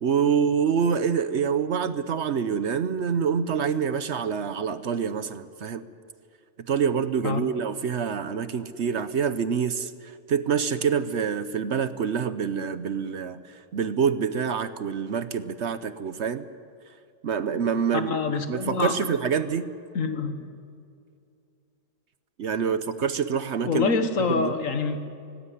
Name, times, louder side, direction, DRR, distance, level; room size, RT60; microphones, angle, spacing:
voice 1, 0.0-5.8 6.7-16.4 17.2-19.7 22.4-23.9 24.3-24.5, right 6 dB, 60° right, 12 dB, 1.0 m, -26 dB
voice 2, 17.9-19.0 19.9-20.4 23.6-25.0, left 4 dB, 65° left, 8 dB, 1.8 m, -26 dB
19.0 x 17.0 x 9.8 m, 2.4 s
omnidirectional pair, 1.5 m